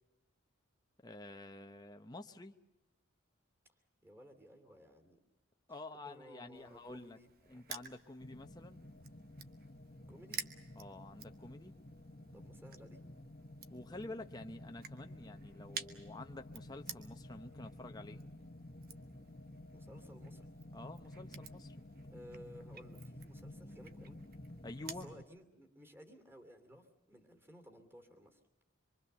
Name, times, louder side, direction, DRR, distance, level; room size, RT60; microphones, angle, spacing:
voice 1, 1.0-2.5 5.7-7.2 7.5-8.8 10.8-11.7 13.7-18.2 20.7-21.8 24.6-25.1, left 2 dB, 20° left, 5 dB, 0.8 m, -49 dB
voice 2, 4.0-5.2 5.9-8.0 10.1-10.4 12.3-13.0 19.7-20.5 22.1-24.2 25.0-28.4, equal, 10° right, 6 dB, 2.8 m, -57 dB
Crushing, 6.5-25.1, right 7 dB, 45° right, 1.2 m, -52 dB
sound 1, 8.2-25.2, left 1 dB, 35° left, 1.3 m, -52 dB
25.5 x 24.0 x 6.8 m, 1.0 s
head